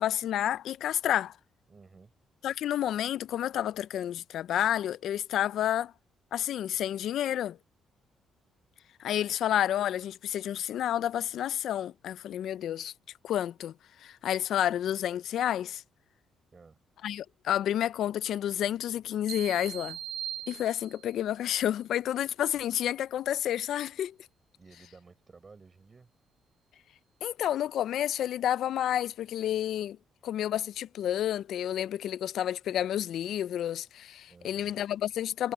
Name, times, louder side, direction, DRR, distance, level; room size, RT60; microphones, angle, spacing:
voice 1, 0.0-1.4 2.4-5.9 6.3-7.6 9.0-12.9 13.2-13.7 14.0-15.8 17.0-20.0 20.5-24.1 27.2-30.0 30.2-35.5, left 11 dB, 75° left, 0.4 m, -30 dB
voice 2, 1.7-2.1 16.5-16.8 24.5-26.1 34.3-34.7, right 4 dB, 35° right, 7.0 m, -54 dB
sound 1, 19.3-21.2, right 10 dB, 75° right, 0.6 m, -40 dB
cardioid pair, 90°, 0 cm